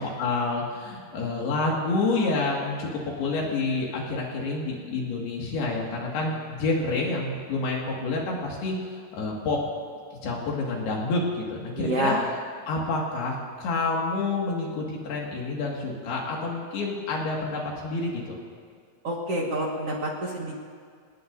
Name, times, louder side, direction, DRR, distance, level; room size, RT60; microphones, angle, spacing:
voice 1, 0.0-8.8 9.1-9.6 10.2-12.1 12.7-18.4, left 3 dB, 75° left, -2 dB, 4.0 m, -28 dB
voice 2, 11.8-12.2 19.0-20.5, right 1 dB, 50° right, -3 dB, 2.1 m, -27 dB
26.5 x 19.0 x 2.7 m, 2.1 s
omnidirectional pair, 4.6 m